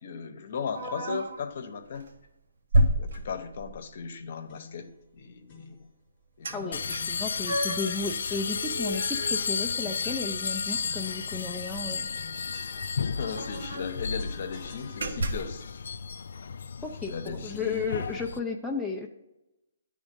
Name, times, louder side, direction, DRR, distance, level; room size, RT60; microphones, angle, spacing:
voice 1, 0.0-2.1 3.0-5.8 6.4-6.8 11.8-11.9 13.1-15.6 17.1-17.8, left 6 dB, 50° left, 8 dB, 0.9 m, -37 dB
sound 1, 0.7-1.4 2.0-2.2 2.7-3.8 6.4-6.6 6.9-8.0 8.4-10.2 10.5-10.6 11.0-11.2 12.3-12.4 12.6-12.7 13.1-14.0 14.4-14.6 15.0-15.6, right 1 dB, 75° right, 1.1 m, -30 dB
sound 2, 4.5-4.9 5.5-5.8 6.5-7.9 8.2-8.8 9.2-10.2 10.8-13.2 13.5-15.4, left 4 dB, 30° left, 1.1 m, -50 dB
voice 2, 6.5-12.1 16.8-19.1, left 4 dB, ahead, -2 dB, 0.5 m, -34 dB
sound 3, 6.7-18.4, left 5 dB, 65° left, 0.3 m, -33 dB
10.0 x 3.6 x 5.2 m, 0.93 s
hypercardioid pair, 160°, 0 cm